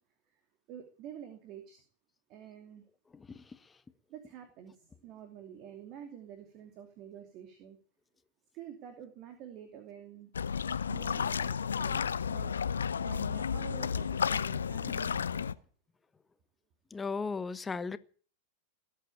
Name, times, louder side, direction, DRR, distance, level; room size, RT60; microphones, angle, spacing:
voice 1, 0.7-1.8 2.3-2.8 4.1-7.8 8.5-10.3 10.9-12.0 12.3-12.5 13.0-15.6, right 9 dB, 40° right, 2.7 m, -48 dB
sound 1, 10.3-15.5, left 7 dB, 70° left, 0.7 m, -32 dB
voice 2, 16.9-18.0, left 4 dB, 15° left, 1.1 m, -35 dB
19.5 x 8.6 x 8.6 m
figure-of-eight pair, 90°, 0 cm